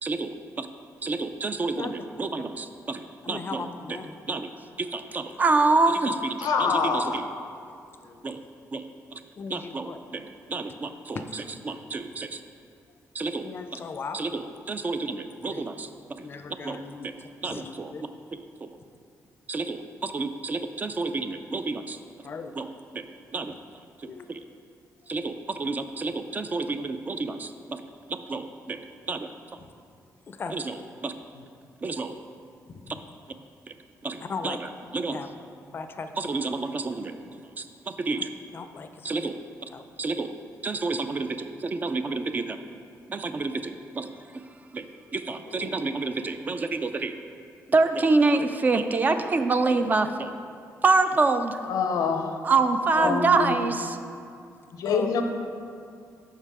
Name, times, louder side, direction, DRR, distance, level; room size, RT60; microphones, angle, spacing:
voice 1, 0.0-0.7 1.0-3.6 4.3-4.5 4.8-7.2 8.2-8.4 8.7-8.8 9.1-9.2 9.5-10.2 10.5-11.2 11.7-12.4 13.2-13.5 14.1-14.4 14.7-15.9 16.6-17.1 17.4-17.9 19.5-22.0 22.6-22.7 22.9-23.0 23.3-23.5 24.0-24.4 25.1-27.8 28.1-28.8 29.1-29.3 30.5-30.8 31.0-31.1 31.8-32.2 34.0-34.6 34.9-35.2 36.2-37.1 37.6-38.3 39.0-39.4 40.0-40.3 40.6-42.6 43.1-44.1 44.7-44.8 45.1-47.1 47.7-50.3 50.8-51.6 52.4-54.0, right 3 dB, 30° right, 9 dB, 0.3 m, -27 dB
voice 2, 3.2-4.1 5.3-5.4 7.7-8.3 9.3-10.0 11.1-11.4 13.4-14.2 15.3-15.7 16.2-18.0 22.2-22.6 23.5-23.6 24.0-24.3 29.6-29.7 30.3-30.5 32.7-33.0 34.2-34.6 35.1-35.3 35.7-36.3 38.5-39.3 39.7-39.8 53.0-53.2 54.9-55.1, left 4 dB, 40° left, 8 dB, 0.4 m, -38 dB
voice 3, 6.4-7.2 45.5-45.7 51.6-52.4 52.9-53.7 54.7-55.2, left 5 dB, 85° left, 5 dB, 0.6 m, -26 dB
5.8 x 5.5 x 4.7 m, 2.4 s
cardioid pair, 115°, 6 cm